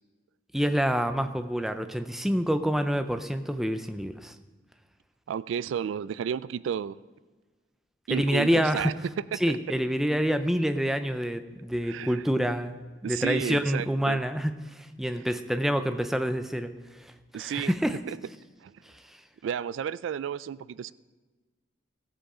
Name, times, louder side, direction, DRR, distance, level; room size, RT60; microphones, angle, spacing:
voice 1, 0.5-4.3 8.1-8.9 9.4-12.8 13.1-16.7 17.4-18.0, equal, ahead, 9 dB, 0.5 m, -27 dB
voice 2, 5.3-7.0 8.1-8.9 9.3-9.4 11.8-12.2 13.0-14.2 17.3-17.7 18.1-18.2 18.6-18.7 19.4-20.9, right 8 dB, 80° right, 18 dB, 0.3 m, -32 dB
16.5 x 7.7 x 4.9 m, 1.3 s
head